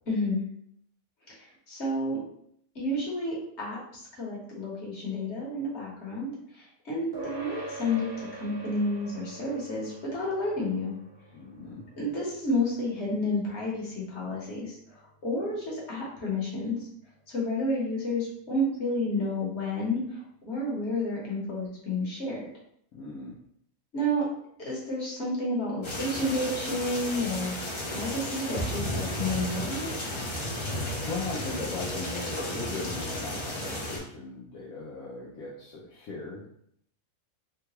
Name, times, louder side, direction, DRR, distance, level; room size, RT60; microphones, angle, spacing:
voice 1, 0.1-0.4 1.3-2.2 2.7-3.8 4.1-10.9 12.0-16.9 17.3-20.2 20.5-22.4 23.9-24.2 24.6-27.5 27.9-29.9, left 1 dB, 55° left, -4 dB, 1.4 m, -30 dB
sound 1, 7.1-16.8, right 2 dB, 30° right, 0.4 m, -46 dB
voice 2, 11.3-11.8 22.9-23.4 31.0-36.5, left 3 dB, 85° left, -5 dB, 1.1 m, -38 dB
sound 2, 25.8-34.0, left 1 dB, 35° left, 0.4 m, -33 dB
3.7 x 2.3 x 2.9 m, 0.68 s
omnidirectional pair, 1.4 m